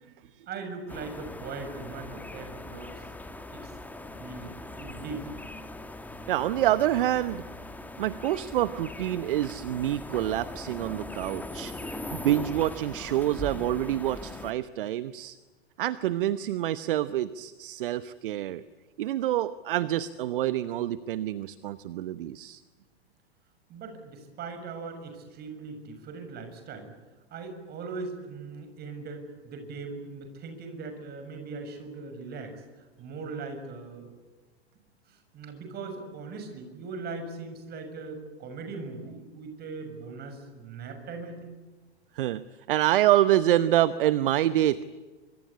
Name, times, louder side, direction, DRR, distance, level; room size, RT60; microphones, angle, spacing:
voice 1, 0.5-3.1 3.5-3.7 4.2-5.3 23.7-26.9 27.3-32.6 33.0-34.1 35.1-41.6, right 4 dB, 30° right, 7 dB, 6.9 m, -40 dB
sound 1, 0.9-14.5, left 2 dB, 5° left, 1.9 m, -40 dB
voice 2, 6.3-7.4 8.0-15.4 15.8-18.6 19.0-22.6 42.1-44.8, right 13 dB, 55° right, 15 dB, 1.0 m, -27 dB
25.5 x 25.0 x 8.6 m, 1.3 s
figure-of-eight pair, 100°, 32 cm